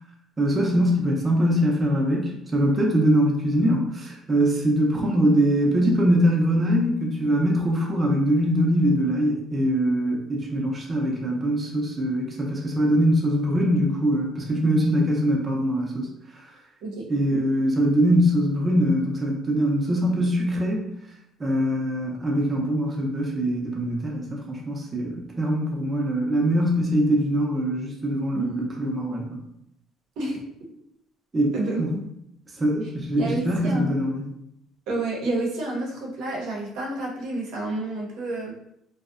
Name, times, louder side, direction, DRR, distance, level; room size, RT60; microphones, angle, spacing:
voice 1, 0.4-16.1 16.3-16.5 17.1-20.8 21.4-29.3 31.3-31.5 31.8-31.9 32.6-34.3, equal, 20° right, -1 dB, 0.5 m, -22 dB
voice 2, 28.3-28.7 30.2-30.4 31.5-32.1 33.2-33.9 34.9-38.5, right 2 dB, 80° right, -2 dB, 0.7 m, -29 dB
2.6 x 2.0 x 2.4 m, 0.77 s
cardioid pair, 120°, 0 cm